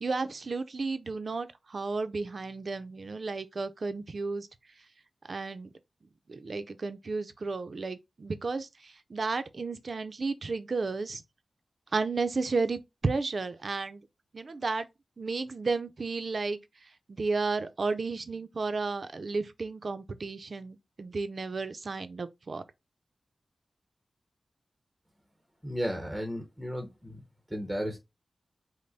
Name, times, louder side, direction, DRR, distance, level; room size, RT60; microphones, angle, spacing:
voice 1, 0.0-4.5 5.3-5.7 6.3-8.7 9.1-11.2 11.9-14.0 14.3-14.9 15.2-16.6 17.1-22.6, right 3 dB, 60° right, 0.6 m, -33 dB
voice 2, 25.6-27.2 27.5-28.0, equal, 5° right, 0.9 m, -34 dB
5.3 x 2.2 x 4.0 m
wide cardioid pair, 95°, 0 cm